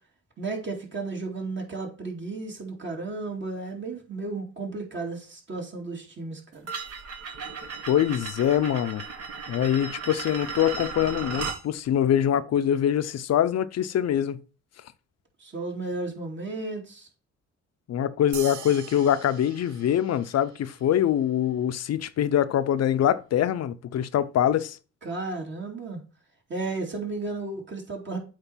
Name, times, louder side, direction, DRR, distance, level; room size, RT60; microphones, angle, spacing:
voice 1, 0.4-6.7 15.4-17.1 25.0-26.0 26.5-28.2, right 3 dB, 40° right, 2.5 m, -33 dB
sound 1, 6.7-11.6, right 5 dB, 55° right, 1.5 m, -36 dB
voice 2, 7.9-9.0 9.5-14.4 17.9-24.8, left 10 dB, 55° left, 0.7 m, -24 dB
sound 2, 18.3-21.1, right 9 dB, 75° right, 0.8 m, -43 dB
8.2 x 3.2 x 5.7 m
cardioid pair, 90°, 30 cm